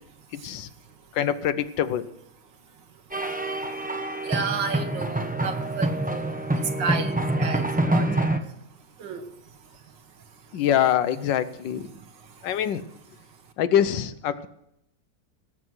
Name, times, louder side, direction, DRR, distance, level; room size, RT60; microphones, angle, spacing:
voice 1, 0.3-0.7 1.1-2.1 10.5-11.9 12.4-12.8 13.6-14.5, left 10 dB, 85° left, 13 dB, 1.5 m, -24 dB
sound 1, 3.1-8.4, right 1 dB, 10° right, 0.5 m, -26 dB
voice 2, 4.2-8.3 9.0-9.3 11.9-12.5, right 5 dB, 85° right, 7 dB, 2.0 m, -32 dB
18.0 x 7.5 x 6.3 m, 0.80 s
omnidirectional pair, 1.9 m